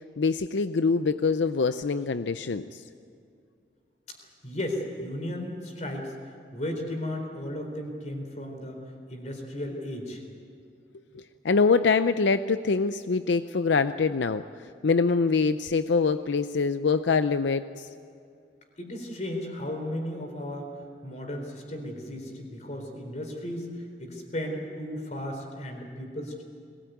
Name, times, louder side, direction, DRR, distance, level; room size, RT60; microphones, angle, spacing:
voice 1, 0.2-2.8 11.1-14.4 14.8-17.9, left 4 dB, 85° left, 11 dB, 0.6 m, -24 dB
voice 2, 4.4-6.1 6.5-8.8 9.1-10.2 18.8-20.7 21.0-23.7 24.0-26.4, left 1 dB, 40° left, 3 dB, 4.1 m, -35 dB
21.5 x 19.0 x 9.3 m, 2.4 s
head